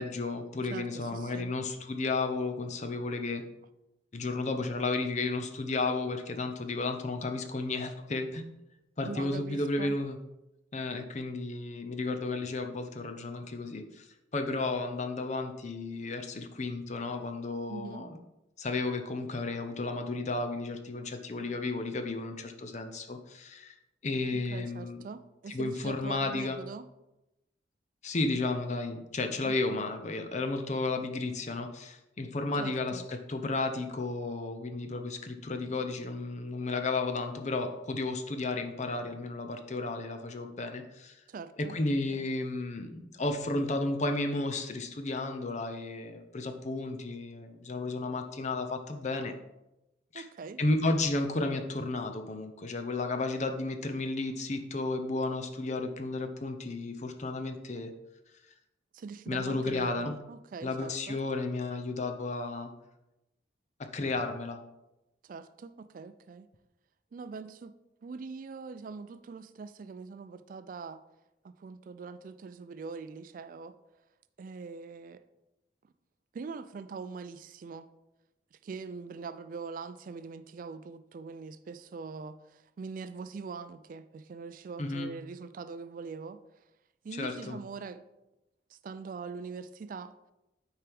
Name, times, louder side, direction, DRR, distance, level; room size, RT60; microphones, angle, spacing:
voice 1, 0.0-3.4 4.1-8.5 9.0-10.2 10.7-14.1 14.3-18.1 18.6-23.8 24.0-25.0 25.5-26.6 28.0-41.1 41.7-49.3 50.1-50.3 50.6-57.9 59.3-60.2 60.6-62.7 63.9-64.6 84.8-85.1 87.1-87.6, left 2 dB, 40° left, 6 dB, 0.7 m, -33 dB
voice 2, 0.7-1.5 9.1-10.0 17.7-18.1 24.5-26.9 29.4-29.8 32.6-33.1 41.3-41.8 42.1-42.3 50.1-50.6 58.9-61.2 65.2-66.5 67.1-67.7 68.0-71.0 71.4-73.7 74.4-75.2 76.3-77.9 78.5-86.4 87.0-88.0 88.7-90.1, right 4 dB, 50° right, 13 dB, 0.3 m, -43 dB
9.1 x 4.6 x 3.5 m, 0.94 s
head